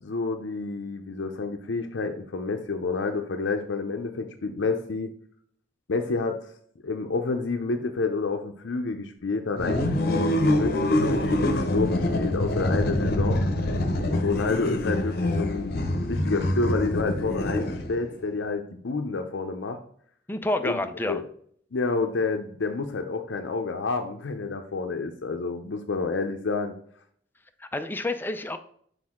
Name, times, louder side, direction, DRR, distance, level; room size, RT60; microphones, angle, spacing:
voice 1, 0.0-5.1 5.9-6.4 6.8-13.4 14.1-19.8 20.6-21.2 21.7-26.7, left 3 dB, 85° left, 5 dB, 0.6 m, -29 dB
sound 1, 9.6-18.1, left 1 dB, 55° left, 0.9 m, -25 dB
voice 2, 20.3-21.2 27.6-28.6, left 1 dB, 10° left, 8 dB, 0.5 m, -29 dB
6.1 x 5.0 x 3.6 m, 0.63 s
head